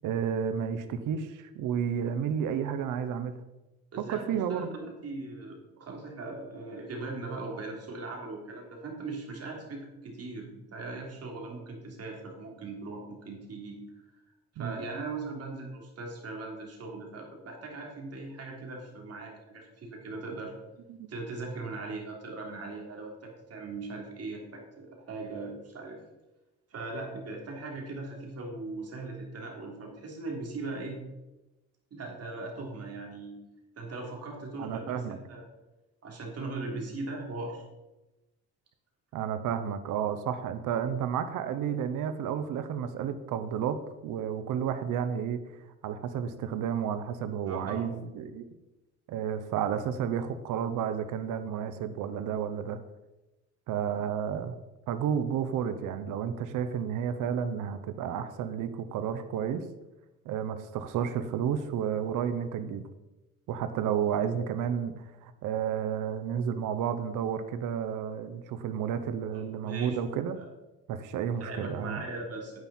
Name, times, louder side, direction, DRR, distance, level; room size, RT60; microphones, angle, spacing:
voice 1, 0.0-3.4 4.1-4.7 14.6-14.7 20.9-21.1 34.6-35.2 39.1-45.4 45.8-48.4 49.1-52.8 53.7-54.5 54.9-59.6 60.3-62.8 63.5-70.4 70.9-72.0, right 8 dB, 85° right, 10 dB, 0.8 m, -31 dB
voice 2, 3.9-13.8 14.5-20.5 21.1-26.0 26.7-31.0 31.9-33.4 33.8-35.4 36.0-37.7 47.4-47.9 69.3-70.0 70.4-70.5 71.5-72.6, right 3 dB, 55° right, 0 dB, 3.3 m, -39 dB
9.5 x 9.0 x 4.3 m, 1.0 s
cardioid pair, 90°, 30 cm